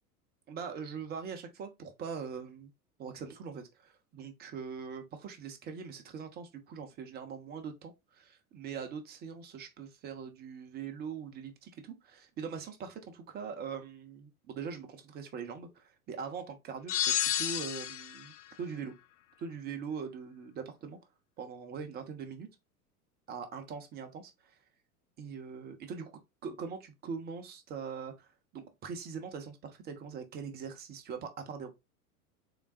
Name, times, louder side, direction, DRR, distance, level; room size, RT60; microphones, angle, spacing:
voice 1, 0.5-2.7 3.0-18.9 19.4-21.0 21.4-22.5 23.3-24.3 25.2-28.3 28.5-31.7, right 6 dB, 20° right, 0.7 m, -42 dB
sound 1, 16.9-18.3, left 10 dB, 50° left, 0.5 m, -31 dB
3.9 x 3.4 x 2.4 m
figure-of-eight pair, 85°, 46 cm